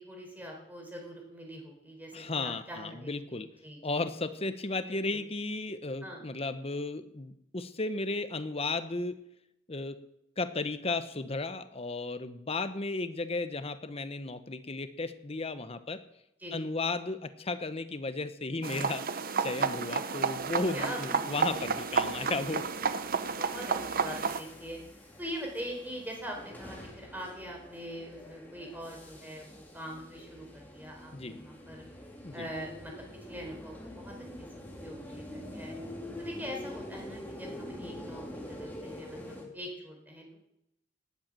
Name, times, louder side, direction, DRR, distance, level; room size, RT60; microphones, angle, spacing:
voice 1, 0.0-4.0 4.8-5.2 6.0-6.2 16.4-16.6 20.7-21.8 23.4-24.8 25.2-31.8 32.3-34.5 34.8-35.7 36.2-40.4, equal, 10° right, 0 dB, 4.6 m, -43 dB
voice 2, 2.1-3.5 3.8-9.2 9.7-10.0 10.4-16.0 16.5-19.0 19.4-22.6 31.1-31.4 32.2-32.5, left 3 dB, 35° left, 11 dB, 1.0 m, -34 dB
sound 1, 18.6-24.4, right 5 dB, 55° right, 0.8 m, -31 dB
sound 2, 20.4-39.4, left 1 dB, 10° left, 3.1 m, -46 dB
19.0 x 8.1 x 7.6 m, 0.81 s
head